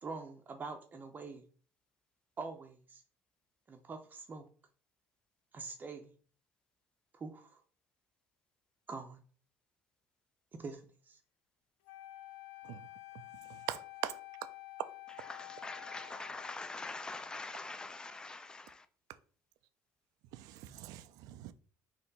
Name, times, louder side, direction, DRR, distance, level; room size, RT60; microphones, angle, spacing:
voice 1, 0.0-1.4 2.4-3.0 3.7-4.5 5.5-6.1 7.1-7.6 8.9-9.2 10.5-11.2, right 4 dB, 30° right, 0.6 m, -45 dB
Wind instrument woodwind instrument, 11.8-17.0, left 16 dB, 80° left, 0.5 m, -50 dB
voice 2, 13.7-14.2 20.3-21.5, right 13 dB, 75° right, 0.4 m, -41 dB
voice 3, 15.2-18.9, left 3 dB, 15° left, 0.4 m, -44 dB
4.3 x 2.9 x 4.0 m
cardioid pair, 120°, 6 cm